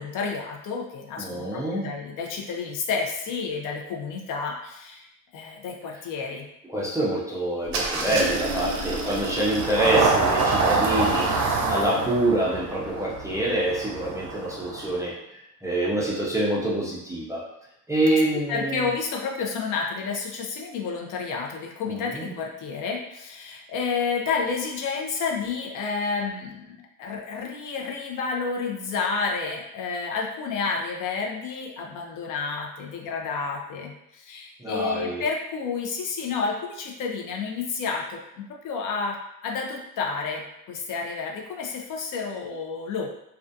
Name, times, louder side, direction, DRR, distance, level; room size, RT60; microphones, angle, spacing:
voice 1, 0.0-5.1 5.3-6.5 18.5-39.2 39.4-43.1, left 5 dB, 65° left, 0 dB, 0.5 m, -30 dB
voice 2, 1.2-1.9 6.7-15.1 15.6-17.4 17.9-18.9 21.9-22.3 34.6-35.2, right 1 dB, 10° right, -7 dB, 0.3 m, -26 dB
Engine starting, 7.7-15.0, right 3 dB, 60° right, 0.5 m, -26 dB
2.3 x 2.3 x 2.5 m, 0.83 s
cardioid pair, 155°, 34 cm